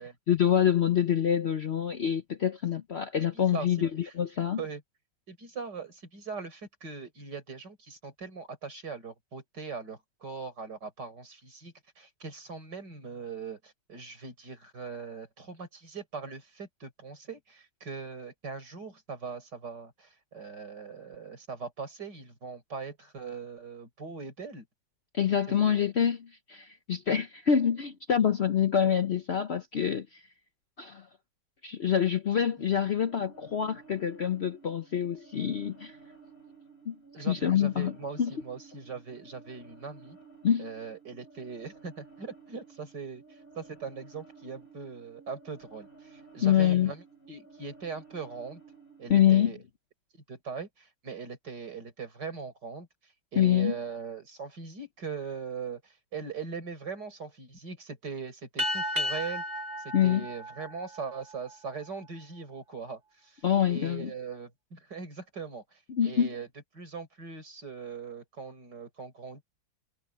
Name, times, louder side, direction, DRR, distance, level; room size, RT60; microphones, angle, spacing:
voice 1, 0.3-4.6 25.1-30.2 30.8-31.1 31.6-36.0 36.9-37.0 37.3-37.9 38.2-38.3 40.4-40.7 46.4-46.9 49.1-49.5 53.4-53.8 59.9-60.3 63.4-64.1 65.9-66.3, left 9 dB, 55° left, 0.7 m, -26 dB
voice 2, 3.3-3.7 4.0-4.1 4.6-4.8 5.3-24.7 25.5-25.9 37.1-40.2 40.6-43.2 43.6-48.6 49.0-49.6 50.1-52.9 53.3-59.4 59.8-63.4 63.7-65.8 66.0-66.5 66.7-69.4, right 5 dB, 75° right, 5.4 m, -40 dB
sound 1, 32.6-49.4, right 4 dB, 35° left, 4.2 m, -54 dB
sound 2, 58.6-61.5, left 1 dB, 30° right, 3.6 m, -34 dB
omnidirectional pair, 1.9 m